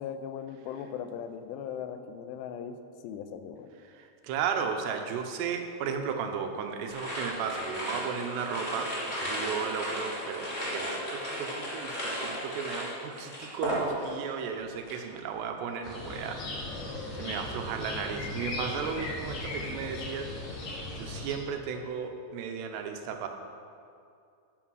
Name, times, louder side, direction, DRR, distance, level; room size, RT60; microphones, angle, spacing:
voice 1, 0.0-2.8 3.0-3.7, left 8 dB, 85° left, 9 dB, 2.8 m, -38 dB
voice 2, 3.9-8.9 9.2-20.3 20.9-23.3, right 6 dB, 80° right, 5 dB, 2.9 m, -35 dB
sound 1, 6.9-14.3 14.6-15.1, equal, 20° left, 2.0 m, -35 dB
sound 2, 15.8-21.3, left 2 dB, 65° left, 4.5 m, -37 dB
10.0 x 9.1 x 6.2 m, 2.5 s
omnidirectional pair, 5.0 m